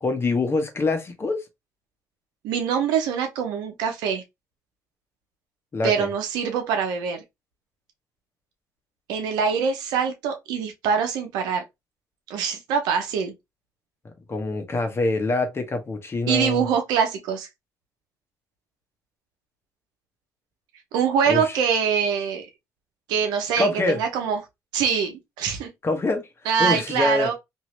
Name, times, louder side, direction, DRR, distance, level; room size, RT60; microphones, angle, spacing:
voice 1, 0.0-1.4 5.7-6.1 14.3-16.7 21.3-21.6 23.6-24.0 25.8-26.3 26.6-27.3, left 2 dB, 35° left, 1.0 m, -25 dB
voice 2, 2.4-4.2 5.8-7.2 9.1-11.6 12.3-13.3 16.3-17.5 20.9-22.5 23.1-24.4 24.7-25.7 26.4-27.3, right 7 dB, 90° right, 0.8 m, -24 dB
2.8 x 2.7 x 3.1 m
supercardioid pair, 70°, 7 cm